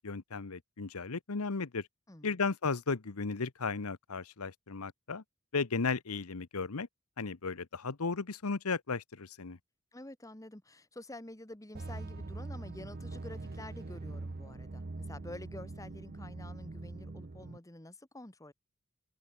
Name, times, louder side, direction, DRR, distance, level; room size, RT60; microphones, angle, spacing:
voice 1, 0.0-1.9 2.2-5.2 5.5-6.9 7.2-9.6, left 4 dB, 85° left, 1.0 m, -35 dB
voice 2, 2.1-2.4 9.9-18.5, left 1 dB, 15° left, 1.4 m, -49 dB
sound 1, 11.7-17.6, right 2 dB, 45° right, 0.7 m, -43 dB
head